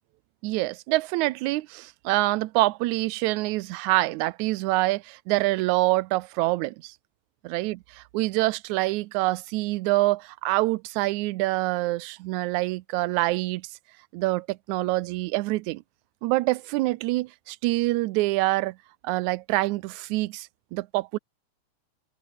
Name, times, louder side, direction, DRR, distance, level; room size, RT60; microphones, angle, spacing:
voice 1, 0.4-6.9 7.5-7.8 8.1-13.7 14.1-15.8 16.2-18.8 19.0-21.2, right 19 dB, 80° right, 1.9 m, -26 dB
omnidirectional pair, 3.6 m